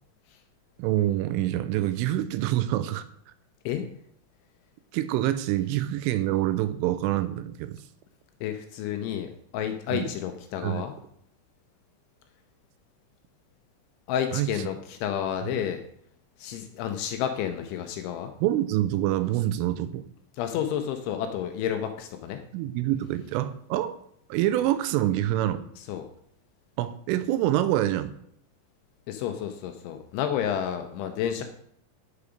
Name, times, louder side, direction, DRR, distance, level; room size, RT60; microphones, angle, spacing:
voice 1, 0.8-3.1 4.9-7.8 9.9-10.1 10.6-10.8 14.3-14.5 18.4-20.1 22.5-23.9 24.3-25.6 26.8-28.1, right 13 dB, 85° right, 12 dB, 3.1 m, -26 dB
voice 2, 8.4-10.9 14.1-15.8 16.4-18.3 20.3-22.4 25.8-26.0 29.1-31.4, left 9 dB, 80° left, 6 dB, 2.8 m, -30 dB
9.8 x 6.9 x 5.0 m, 0.69 s
omnidirectional pair, 5.9 m